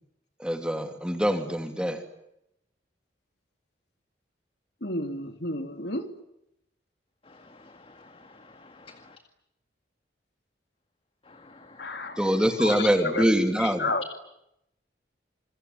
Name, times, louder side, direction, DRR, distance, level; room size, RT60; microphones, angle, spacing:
voice 1, 0.4-2.0 12.2-13.9, equal, 5° right, 6 dB, 3.0 m, -24 dB
voice 2, 4.8-6.1 11.8-12.3 12.6-13.3 13.6-14.0, left 2 dB, 65° left, 7 dB, 3.3 m, -31 dB
voice 3, 7.3-9.2 11.3-12.4, left 3 dB, 30° left, 7 dB, 2.0 m, -52 dB
27.5 x 22.5 x 9.6 m, 0.81 s
head